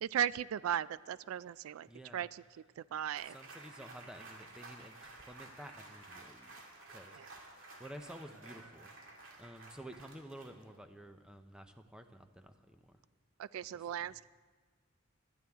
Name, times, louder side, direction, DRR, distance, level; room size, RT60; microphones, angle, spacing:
voice 1, 0.0-1.9 2.1-2.4 2.8-3.3 7.2-7.3 13.4-14.2, right 9 dB, 90° right, 19 dB, 0.3 m, -36 dB
voice 2, 1.9-2.3 3.2-6.6 6.9-7.5 7.8-8.9 9.4-13.0 13.7-14.1, right 1 dB, 5° right, 7 dB, 0.6 m, -52 dB
sound 1, 3.1-10.8, right 2 dB, 70° right, 2.1 m, -53 dB
21.0 x 12.5 x 3.6 m, 1.4 s
head